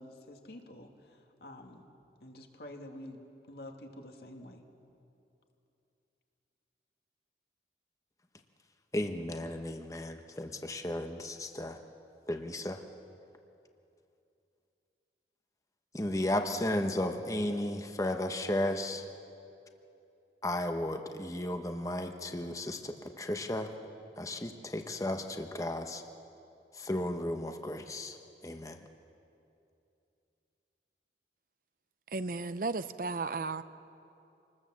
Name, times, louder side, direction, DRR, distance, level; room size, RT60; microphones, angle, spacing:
voice 1, 0.0-1.9 2.2-3.2 3.5-4.6, left 1 dB, 65° left, 3 dB, 2.0 m, -48 dB
voice 2, 8.9-11.8 12.3-12.8 15.9-19.0 20.4-23.7 24.2-26.0 26.7-28.2 28.4-28.8, left 1 dB, 20° left, 6 dB, 1.0 m, -34 dB
voice 3, 32.1-33.6, right 3 dB, 50° right, 13 dB, 0.6 m, -34 dB
27.0 x 19.5 x 7.5 m, 2.7 s
head